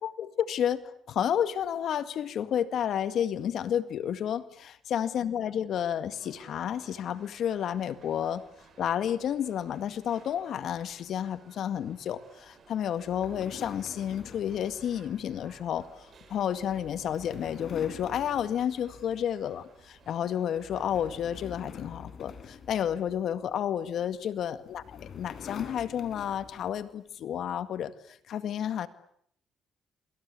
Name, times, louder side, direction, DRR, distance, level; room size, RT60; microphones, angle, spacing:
voice 1, 0.0-4.4 4.9-8.4 8.8-28.9, left 9 dB, 65° left, 13 dB, 1.9 m, -31 dB
sound 1, 6.1-21.5, right 5 dB, 45° right, 7.0 m, -58 dB
sound 2, 13.0-19.5 19.9-20.2 20.6-23.6 24.4-26.8, left 6 dB, 50° left, 4.3 m, -47 dB
28.5 x 24.5 x 8.5 m, 0.69 s
cardioid pair, 105°, 0 cm